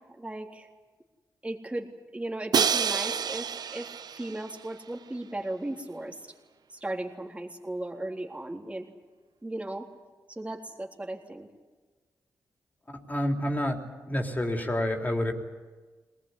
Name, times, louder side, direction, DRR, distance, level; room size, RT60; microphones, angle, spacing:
voice 1, 0.2-0.7 1.4-3.9 4.2-6.2 6.7-8.9 9.4-9.9 10.3-11.5, right 1 dB, 20° right, 0 dB, 3.7 m, -36 dB
Crash cymbal, 2.5-4.5, right 7 dB, 70° right, 0.8 m, -28 dB
voice 2, 12.9-13.8 14.1-15.3, left 1 dB, 25° left, 2 dB, 3.8 m, -28 dB
22.0 x 20.0 x 10.0 m, 1.3 s
cardioid pair, 70°, 7 cm